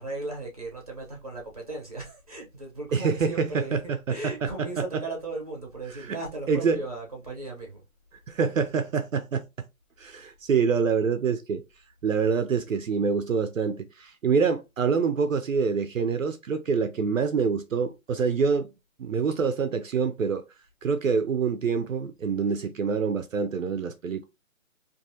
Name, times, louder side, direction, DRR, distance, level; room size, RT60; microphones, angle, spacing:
voice 1, 0.0-7.8, right 2 dB, 30° right, 0.7 m, -37 dB
voice 2, 2.9-4.8 6.1-6.2 6.5-6.8 8.3-9.4 10.0-11.6 12.0-18.7 19.0-20.4 20.8-24.3, right 5 dB, 70° right, 0.5 m, -26 dB
2.5 x 2.4 x 2.6 m
hypercardioid pair, 175°, 42 cm